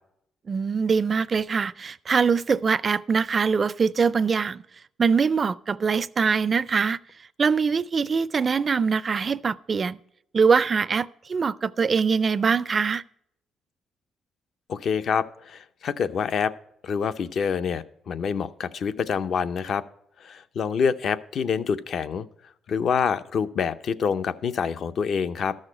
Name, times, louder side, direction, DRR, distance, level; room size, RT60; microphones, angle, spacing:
voice 1, 0.5-4.6 5.0-7.0 7.4-10.0 10.3-13.0, right 5 dB, 40° right, 0.4 m, -23 dB
voice 2, 14.7-16.5 16.8-19.8 20.2-22.3 22.7-25.6, left 6 dB, 60° left, 0.6 m, -26 dB
13.0 x 6.5 x 4.9 m
cardioid pair, 90°, 0 cm